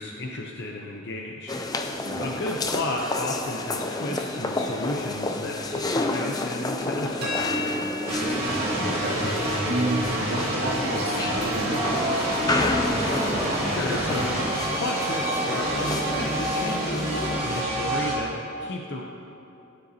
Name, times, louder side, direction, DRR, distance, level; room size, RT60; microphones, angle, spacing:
voice 1, 0.0-1.6 2.2-7.8 13.6-14.5 14.8-19.0, left 1 dB, 50° left, 0 dB, 0.7 m, -33 dB
sound 1, 1.5-17.6, left 2 dB, 15° left, 0.4 m, -30 dB
sound 2, 7.2-13.0, left 2 dB, 45° right, 1.8 m, -37 dB
sound 3, 8.0-18.2, right 1 dB, 25° right, 2.2 m, -27 dB
voice 2, 8.8-9.3 9.7-12.0, right 1 dB, 85° right, -1 dB, 1.6 m, -30 dB
17.0 x 9.6 x 2.8 m, 2.9 s
head